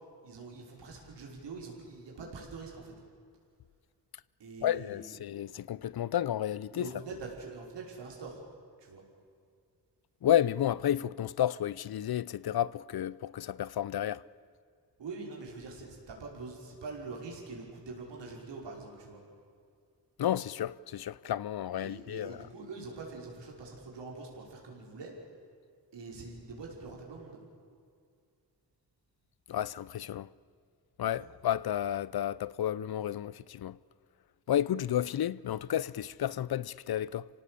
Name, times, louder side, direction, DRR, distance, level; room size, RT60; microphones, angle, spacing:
voice 1, 0.2-2.9 4.4-5.2 6.7-8.4 8.8-9.0 15.0-19.2 21.8-25.2 25.9-27.4 31.1-31.3, right 4 dB, 85° right, 5.5 m, -44 dB
voice 2, 4.6-6.9 10.2-14.2 20.2-22.5 29.5-30.3 31.0-33.8 34.5-37.3, left 11 dB, 60° left, 0.7 m, -31 dB
26.5 x 17.5 x 8.4 m
cardioid pair, 60°, 41 cm